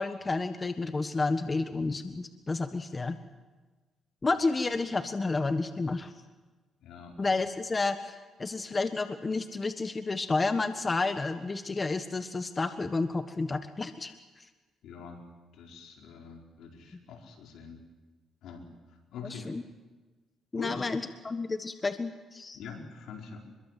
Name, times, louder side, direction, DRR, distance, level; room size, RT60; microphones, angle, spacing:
voice 1, 0.0-3.2 4.2-6.1 7.2-14.1 19.2-19.6 20.5-22.6, left 3 dB, 25° left, 9 dB, 1.3 m, -30 dB
voice 2, 6.8-7.3 14.8-17.8 18.4-19.5 20.5-20.9 22.5-23.4, left 5 dB, 80° left, 1 dB, 4.9 m, -44 dB
25.5 x 22.5 x 7.6 m, 1.3 s
cardioid pair, 90°, 0 cm